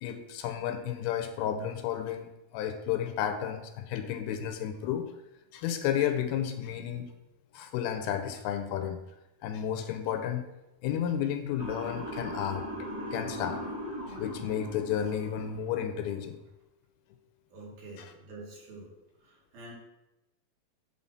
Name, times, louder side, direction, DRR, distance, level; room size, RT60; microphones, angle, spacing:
voice 1, 0.0-5.1 5.5-7.1 7.5-9.0 9.4-10.5 10.8-13.6 14.1-16.4, left 9 dB, 85° left, 7 dB, 2.6 m, -32 dB
Motor vehicle (road) / Siren, 11.6-15.7, equal, 10° right, 1.1 m, -39 dB
voice 2, 17.5-18.9 19.2-19.7, right 2 dB, 75° right, -4 dB, 3.9 m, -47 dB
9.0 x 3.7 x 5.7 m, 0.95 s
omnidirectional pair, 4.4 m